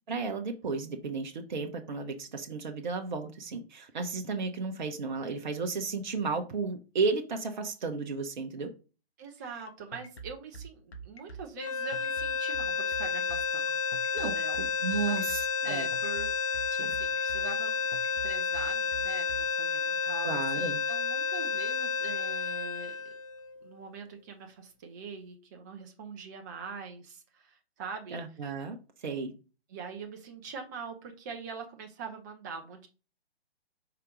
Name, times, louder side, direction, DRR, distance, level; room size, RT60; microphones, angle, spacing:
voice 1, 0.1-8.7 14.1-15.9 16.7-16.9 20.2-20.8 28.1-29.3, right 4 dB, 45° right, 4 dB, 0.9 m, -33 dB
voice 2, 9.2-13.8 14.3-14.7 15.1-15.2 15.6-17.7 18.2-23.0 23.6-28.2 29.7-32.9, right 5 dB, 20° right, 3 dB, 0.6 m, -43 dB
sound 1, 9.7-19.4, right 4 dB, 70° left, 1.3 m, -44 dB
sound 2, 11.6-23.8, left 6 dB, 30° left, 0.5 m, -31 dB
5.5 x 3.9 x 5.0 m, 0.34 s
figure-of-eight pair, 130°, 32 cm